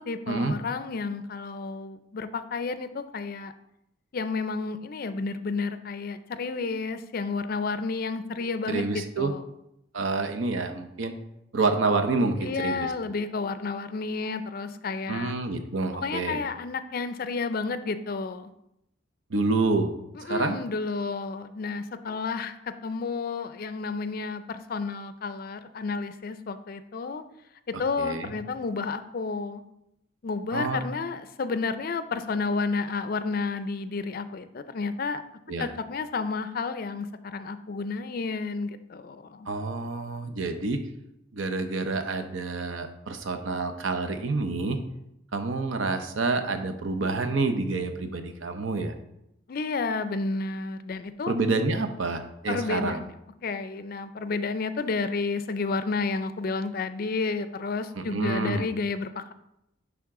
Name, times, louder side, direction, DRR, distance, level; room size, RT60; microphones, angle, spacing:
voice 1, 0.0-3.5 4.1-9.4 12.4-15.3 16.0-18.5 20.2-27.2 27.8-29.6 30.2-35.2 35.6-39.5 49.5-51.3 52.5-53.1 53.4-59.3, left 4 dB, 50° left, 11 dB, 0.4 m, -31 dB
voice 2, 8.7-9.3 9.9-11.1 11.5-12.9 15.1-16.4 19.3-19.9 20.2-20.6 28.0-28.3 30.5-30.8 35.5-35.7 39.5-40.8 41.3-44.8 45.3-48.9 51.3-53.0 58.0-58.6, right 3 dB, 80° right, 7 dB, 0.7 m, -28 dB
10.5 x 3.6 x 3.7 m, 0.83 s
head